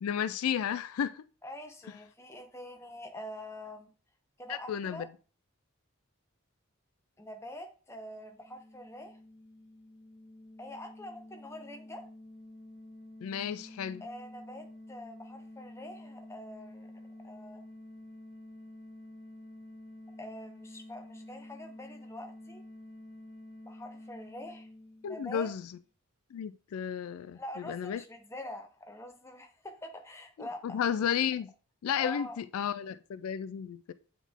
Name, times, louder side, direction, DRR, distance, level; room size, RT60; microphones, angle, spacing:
voice 1, 0.0-1.2 4.5-5.0 13.2-14.0 25.0-25.7 26.3-28.0 30.6-31.5 31.8-33.9, left 8 dB, 85° left, 0.3 m, -33 dB
voice 2, 1.4-3.9 4.4-5.1 7.2-9.2 10.6-12.0 14.0-16.9 17.2-17.6 20.2-22.6 23.6-24.7 25.1-25.5 27.3-30.8 32.0-32.4, left 1 dB, 10° left, 0.8 m, -45 dB
sound 1, 8.1-25.6, left 1 dB, 50° left, 2.0 m, -50 dB
8.3 x 3.6 x 3.6 m
head